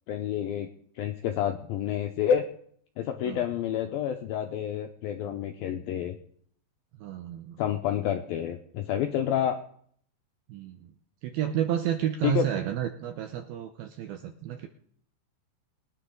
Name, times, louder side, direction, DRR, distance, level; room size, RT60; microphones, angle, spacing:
voice 1, 0.1-0.7 1.0-2.4 3.0-6.2 7.6-9.6 12.2-12.5, left 9 dB, 85° left, 5 dB, 2.1 m, -29 dB
voice 2, 7.0-7.6 10.5-10.9 11.2-14.7, right 11 dB, 80° right, 6 dB, 2.2 m, -31 dB
22.0 x 9.7 x 3.8 m, 0.62 s
omnidirectional pair, 5.3 m